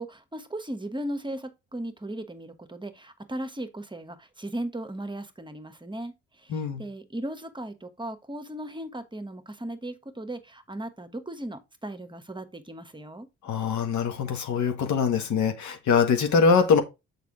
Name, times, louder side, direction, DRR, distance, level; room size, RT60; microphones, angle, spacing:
voice 1, 0.0-6.5 6.8-13.3, right 1 dB, 15° right, 1.1 m, -37 dB
voice 2, 6.5-6.8 13.4-16.8, left 5 dB, 70° left, 1.7 m, -23 dB
6.7 x 5.2 x 3.7 m
cardioid pair, 90°, 30 cm